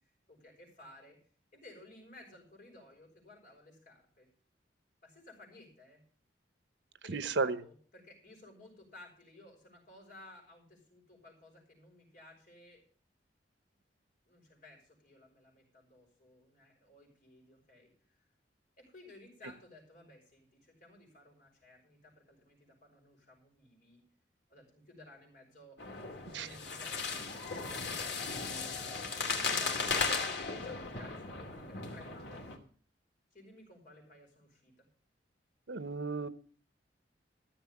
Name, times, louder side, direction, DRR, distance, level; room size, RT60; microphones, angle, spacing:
voice 1, 0.3-1.2 1.5-4.3 5.0-6.0 7.0-12.8 14.2-17.9 18.8-24.0 24.5-29.3 30.1-32.5 33.3-34.9, left 1 dB, 50° left, 0 dB, 6.4 m, -56 dB
voice 2, 7.1-7.6 26.3-26.5 35.7-36.3, right 4 dB, 85° right, 14 dB, 0.9 m, -33 dB
sound 1, 25.8-32.6, left 4 dB, 70° left, 2.4 m, -36 dB
14.5 x 7.2 x 7.2 m, 0.43 s
head